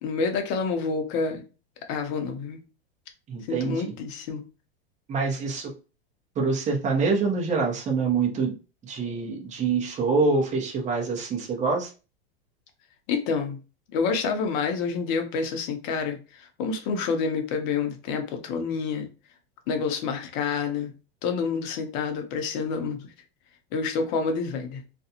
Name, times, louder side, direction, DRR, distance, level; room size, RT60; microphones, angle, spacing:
voice 1, 0.0-1.4 1.9-2.6 3.5-4.4 13.1-13.6 13.9-19.1 19.7-20.9 21.2-23.1 23.7-24.8, left 5 dB, 50° left, 5 dB, 0.7 m, -28 dB
voice 2, 3.3-3.9 5.1-5.7 6.4-8.5 8.8-11.9, right 4 dB, 25° right, 0 dB, 0.8 m, -25 dB
2.5 x 2.3 x 2.8 m, 0.34 s
supercardioid pair, 130°, 31 cm